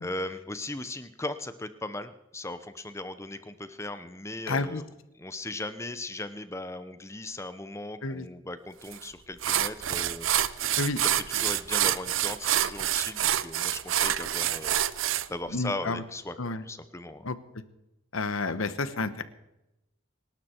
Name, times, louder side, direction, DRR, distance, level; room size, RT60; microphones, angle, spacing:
voice 1, 0.0-4.8 5.2-17.3, left 2 dB, 15° left, 11 dB, 0.8 m, -38 dB
voice 2, 4.5-4.8 8.0-8.3 10.8-11.0 15.5-16.0 16.4-16.6 17.2-17.4 18.1-19.2, left 3 dB, 85° left, 13 dB, 1.2 m, -30 dB
sound 1, 8.9-9.0 9.4-15.3, right 11 dB, 75° right, 0.7 m, -27 dB
25.5 x 12.0 x 4.5 m, 0.93 s
head